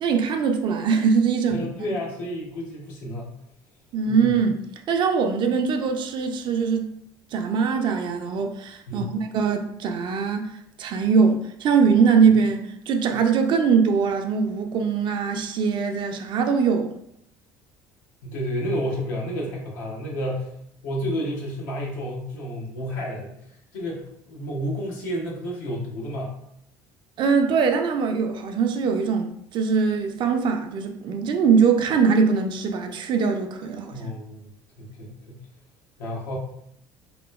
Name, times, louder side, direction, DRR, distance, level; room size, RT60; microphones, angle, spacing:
voice 1, 0.0-1.7 3.9-4.6 4.9-6.9 7.3-10.5 10.8-16.9 27.2-33.9, right 5 dB, 50° right, 0.4 m, -22 dB
voice 2, 1.5-3.4 4.0-4.4 8.9-9.1 18.2-20.5 20.8-26.3 33.9-34.5 34.8-35.4 36.0-36.4, equal, 85° left, 0.8 m, -31 dB
2.9 x 2.2 x 2.3 m
supercardioid pair, 80°, 10 cm